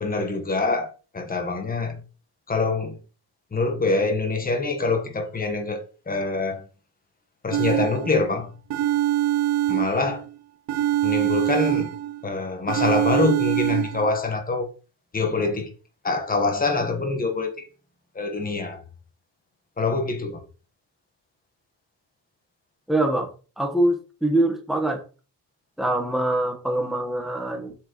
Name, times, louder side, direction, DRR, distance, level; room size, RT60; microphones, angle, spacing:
voice 1, 0.0-2.0 2.5-3.0 3.5-6.6 7.4-8.5 9.7-10.2 11.0-11.9 12.2-14.7 15.1-15.7 16.0-17.7 18.1-18.8 19.8-20.4, left 3 dB, 20° left, 1.3 m, -25 dB
sound 1, 7.5-8.3 8.7-10.3 10.7-12.3 12.7-14.1, right 13 dB, 80° right, 0.9 m, -24 dB
voice 2, 22.9-23.3 23.6-25.0 25.8-27.7, right 1 dB, ahead, 1.3 m, -24 dB
7.6 x 6.1 x 3.1 m
cardioid pair, 170°, 42 cm